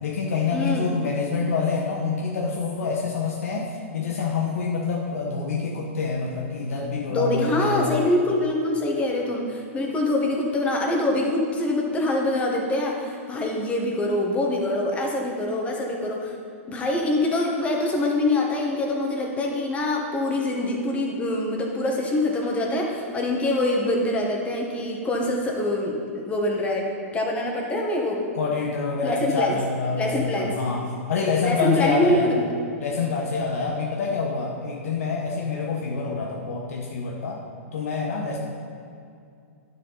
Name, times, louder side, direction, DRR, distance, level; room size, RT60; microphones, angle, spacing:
voice 1, 0.0-8.0 28.3-30.8 31.1-32.3 32.8-37.4 37.7-38.4, left 4 dB, 80° left, -1 dB, 1.1 m, -26 dB
voice 2, 0.5-0.9 7.1-16.4 16.7-26.9 27.1-28.3 29.0-29.6 30.0-30.5 31.4-32.4, left 1 dB, 15° left, 0 dB, 1.3 m, -24 dB
10.5 x 7.1 x 4.0 m, 2.4 s
hypercardioid pair, 145°, 8 cm